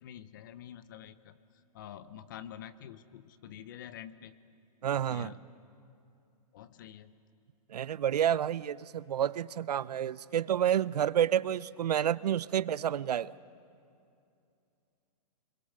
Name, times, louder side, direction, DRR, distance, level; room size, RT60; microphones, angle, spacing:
voice 1, 0.0-1.4 1.7-4.3 4.9-5.5 6.5-7.1, left 10 dB, 30° left, 15 dB, 0.6 m, -47 dB
voice 2, 4.8-5.3 7.7-13.3, right 10 dB, 90° right, 20 dB, 0.6 m, -29 dB
25.5 x 22.0 x 6.6 m, 2.5 s
hypercardioid pair, 170°, 20 cm